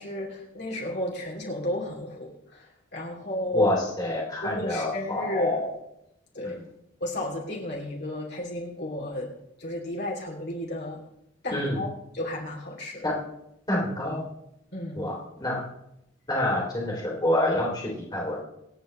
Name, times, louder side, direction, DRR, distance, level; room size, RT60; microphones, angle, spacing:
voice 1, 0.0-3.7 4.4-5.6 6.3-6.6 7.0-9.3 9.6-11.0 11.4-13.0 14.7-15.1, left 1 dB, 50° left, -3 dB, 2.9 m, -32 dB
voice 2, 3.5-5.7 6.4-6.5 11.5-11.8 13.0-13.2 13.7-14.2 14.9-15.6 16.3-18.4, left 1 dB, 20° left, -3 dB, 3.1 m, -27 dB
26.5 x 9.1 x 3.2 m, 0.82 s
head